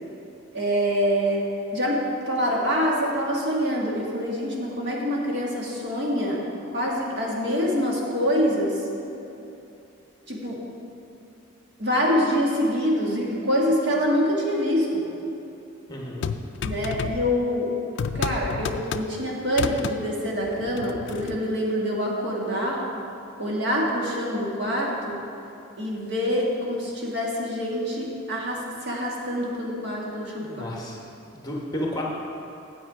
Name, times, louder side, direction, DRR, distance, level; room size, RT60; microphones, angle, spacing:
voice 1, 0.5-1.4 1.7-2.0 2.3-6.4 6.7-8.8 10.3-10.6 11.8-15.1 16.6-17.7 18.1-22.8 23.4-25.2 25.8-30.7, equal, 55° right, -3 dB, 1.5 m, -25 dB
voice 2, 15.9-16.3 30.4-31.0 31.3-32.0, equal, 20° left, -3 dB, 1.1 m, -32 dB
sound 1, 16.2-17.5 18.0-19.2 19.5-20.0 20.5-21.4, left 6 dB, 55° left, 0.3 m, -31 dB
8.9 x 7.6 x 4.8 m, 2.8 s
head